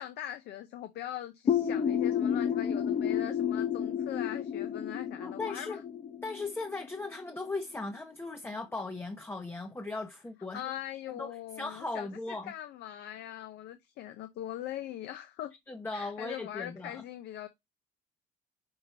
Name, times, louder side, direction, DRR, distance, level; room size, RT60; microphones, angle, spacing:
voice 1, 0.0-5.8 10.5-15.5 15.9-17.5, left 12 dB, 75° left, 0.8 m, -41 dB
sound 1, 1.5-7.0, left 8 dB, 35° left, 0.9 m, -31 dB
voice 2, 5.2-5.8 6.2-10.6 11.1-12.5 15.7-17.0, left 3 dB, 15° left, 0.8 m, -38 dB
5.7 x 4.3 x 5.5 m
cardioid pair, 110°, 17 cm